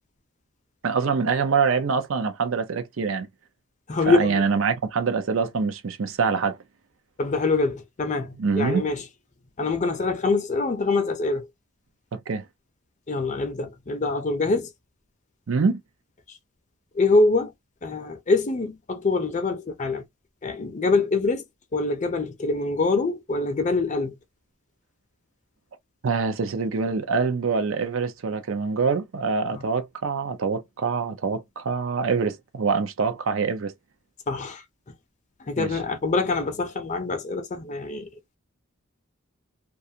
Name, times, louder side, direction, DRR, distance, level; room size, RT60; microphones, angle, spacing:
voice 1, 0.8-3.3 4.1-6.6 8.4-8.9 12.1-12.5 15.5-15.8 26.0-33.7 35.6-35.8, right 5 dB, 65° right, 0.5 m, -25 dB
voice 2, 3.9-4.4 7.2-9.0 9.6-11.5 13.1-14.7 16.9-17.5 17.8-20.0 20.4-21.4 21.7-24.1 29.5-29.6 34.3-34.6 35.5-38.1, left 3 dB, 35° left, 0.5 m, -24 dB
2.4 x 2.3 x 2.7 m
head